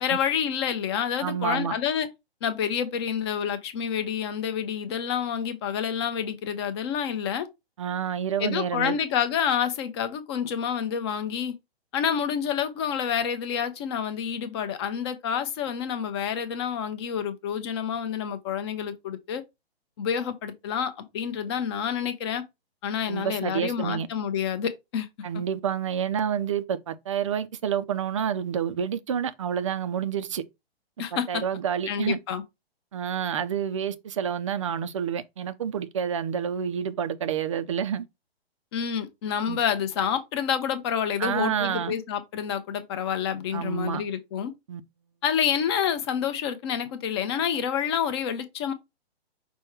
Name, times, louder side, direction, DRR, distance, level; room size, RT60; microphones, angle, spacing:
voice 1, 0.0-2.1 2.4-7.5 8.4-11.5 11.9-19.4 20.0-22.4 22.8-25.1 31.0-31.4 31.9-32.4 38.7-44.5 45.2-48.7, left 8 dB, 25° left, 0.6 m, -28 dB
voice 2, 1.2-1.7 7.8-9.0 23.1-24.1 25.2-30.4 31.1-32.2 32.9-38.1 39.5-39.6 41.2-41.9 43.5-44.0 44.7-44.8, right 8 dB, 30° right, 0.4 m, -28 dB
5.3 x 2.2 x 4.4 m
figure-of-eight pair, 130°, 32 cm